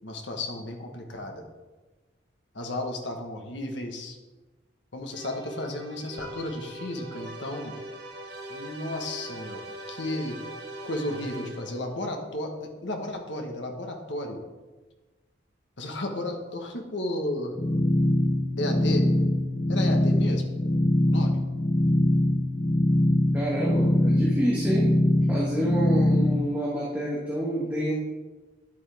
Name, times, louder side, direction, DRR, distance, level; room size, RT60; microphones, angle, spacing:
voice 1, 0.0-1.4 2.5-4.2 4.9-7.8 8.5-10.4 10.8-14.4 15.8-17.5 18.6-19.1 19.7-20.5 21.1-21.4, left 1 dB, 75° left, 3 dB, 1.4 m, -33 dB
sound 1, 5.1-12.0, right 1 dB, 60° right, 1.3 m, -41 dB
sound 2, 17.5-26.4, left 1 dB, 25° left, 0.5 m, -23 dB
voice 2, 23.3-24.9 25.3-27.9, equal, 10° right, -7 dB, 1.6 m, -28 dB
10.5 x 8.3 x 3.5 m, 1.2 s
head